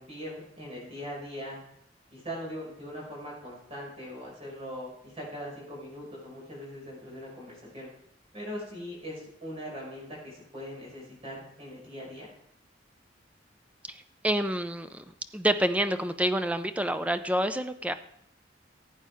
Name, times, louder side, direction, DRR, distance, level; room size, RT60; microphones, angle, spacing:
voice 1, 0.0-1.6 2.1-7.9 8.3-12.3, equal, 35° right, -3 dB, 5.6 m, -41 dB
voice 2, 13.9-15.0 15.3-17.9, right 1 dB, 10° right, 10 dB, 0.5 m, -28 dB
15.5 x 8.8 x 3.6 m, 0.72 s
head